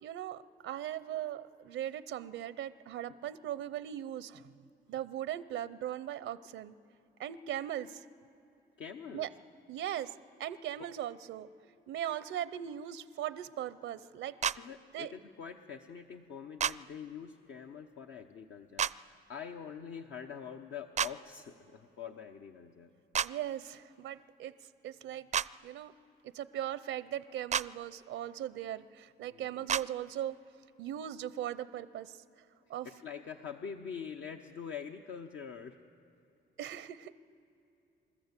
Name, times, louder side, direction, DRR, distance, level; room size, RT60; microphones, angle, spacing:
voice 1, 0.0-4.5 4.9-6.7 7.2-8.0 9.1-9.3 9.7-10.1 10.4-11.5 11.9-14.3 14.9-15.1 23.2-24.5 24.8-25.9 26.3-30.4 30.8-32.2 32.7-32.9 36.6-37.2, right 11 dB, 85° right, 16 dB, 0.6 m, -39 dB
voice 2, 8.8-9.3 14.6-22.9 29.3-29.7 32.8-35.8, left 7 dB, 70° left, 3 dB, 0.9 m, -45 dB
sound 1, 14.4-14.6 16.6-16.7 18.8-18.9 21.0-21.1 23.1-23.3 25.3-25.5 27.5-27.7 29.7-29.8, right 8 dB, 35° right, 0.4 m, -29 dB
27.0 x 13.5 x 8.3 m, 2.9 s
cardioid pair, 90°, 20 cm